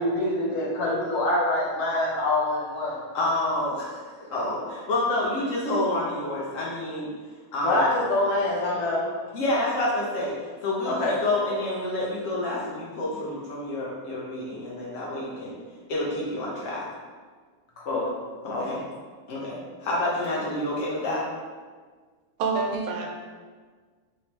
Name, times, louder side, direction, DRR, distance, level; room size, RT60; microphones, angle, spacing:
voice 1, 0.0-3.0 7.6-9.1 10.9-11.2 17.8-18.1 18.5-18.8, left 2 dB, 60° left, -4 dB, 1.1 m, -25 dB
voice 2, 3.1-7.1 7.5-7.8 9.3-10.3 10.6-15.5 15.9-16.8 18.4-18.8 19.3-21.2, left 1 dB, 75° left, -5 dB, 0.7 m, -28 dB
voice 3, 22.4-23.1, right 4 dB, 85° right, 1 dB, 1.5 m, -26 dB
4.3 x 3.2 x 3.0 m, 1.5 s
omnidirectional pair, 2.3 m